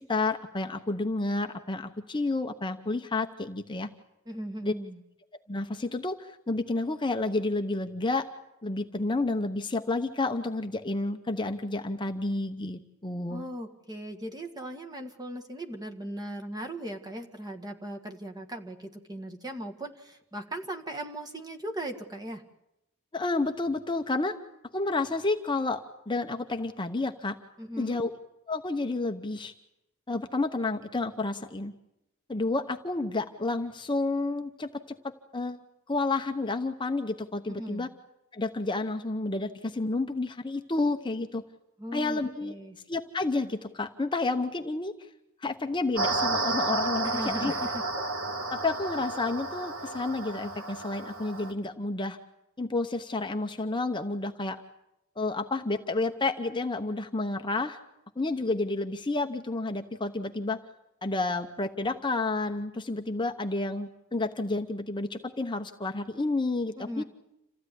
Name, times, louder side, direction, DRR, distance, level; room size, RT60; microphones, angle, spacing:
voice 1, 0.0-3.9 4.6-4.7 5.5-8.3 8.6-13.4 23.1-24.4 24.7-25.8 26.1-27.4 27.8-28.1 28.5-29.5 30.1-31.7 32.3-35.6 35.9-37.9 38.3-41.4 41.9-42.5 42.9-45.1 45.4-47.1 47.4-47.5 48.0-48.1 48.5-52.2 52.6-54.6 55.2-57.8 58.2-60.6 61.0-67.0, left 2 dB, 20° left, 6 dB, 0.8 m, -30 dB
voice 2, 4.3-5.0 13.3-22.4 27.6-28.0 37.5-37.9 41.8-42.8 47.0-47.8 66.8-67.0, right 1 dB, 20° right, 4 dB, 1.8 m, -38 dB
sound 1, 46.0-51.5, right 2 dB, 70° right, 2.3 m, -31 dB
27.5 x 15.5 x 10.0 m, 0.88 s
head